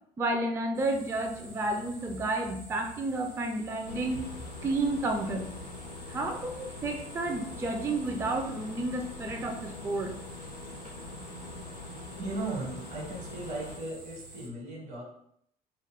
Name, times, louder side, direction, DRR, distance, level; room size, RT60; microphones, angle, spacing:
voice 1, 0.2-4.2 4.6-5.5 6.1-10.1, right 2 dB, 15° right, 3 dB, 0.3 m, -31 dB
sound 1, 0.7-14.5, right 2 dB, 85° right, 0.8 m, -49 dB
sound 2, 3.9-13.8, left 3 dB, 80° left, 0.4 m, -44 dB
voice 2, 12.2-15.0, right 2 dB, 60° right, -2 dB, 1.1 m, -37 dB
2.2 x 2.2 x 3.4 m, 0.68 s
figure-of-eight pair, 60°, 20 cm